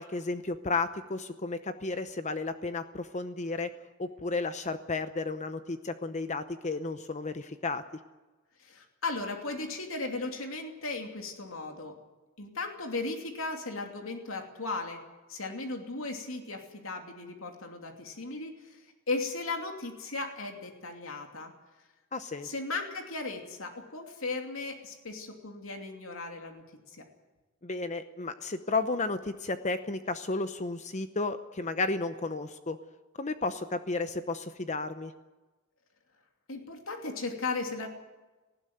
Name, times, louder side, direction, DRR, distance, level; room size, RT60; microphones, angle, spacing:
voice 1, 0.0-3.7 4.0-7.8 22.1-22.5 27.6-32.8 33.2-35.1, left 3 dB, 35° left, 10 dB, 0.8 m, -33 dB
voice 2, 8.6-12.0 12.4-15.0 15.3-21.5 22.4-27.0 36.5-37.9, left 3 dB, 80° left, 3 dB, 2.8 m, -36 dB
19.0 x 16.0 x 9.3 m, 1.2 s
head